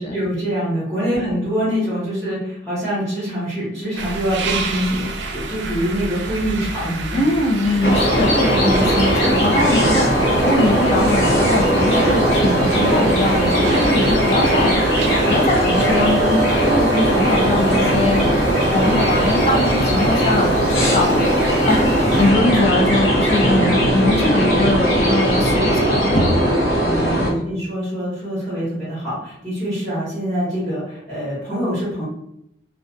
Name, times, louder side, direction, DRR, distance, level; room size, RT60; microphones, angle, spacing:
voice 1, 0.0-7.2 7.6-7.9 8.4-8.8 9.2-9.7 12.7-13.0 26.7-32.0, equal, 5° left, -10 dB, 0.9 m, -25 dB
sound 1, 4.0-22.3, right 3 dB, 70° right, 0.3 m, -32 dB
voice 2, 7.1-21.2 21.6-26.4, left 2 dB, 35° left, 0 dB, 0.4 m, -22 dB
sound 2, 7.8-27.3, equal, 70° left, 0.9 m, -18 dB
2.3 x 2.2 x 2.5 m, 0.77 s
head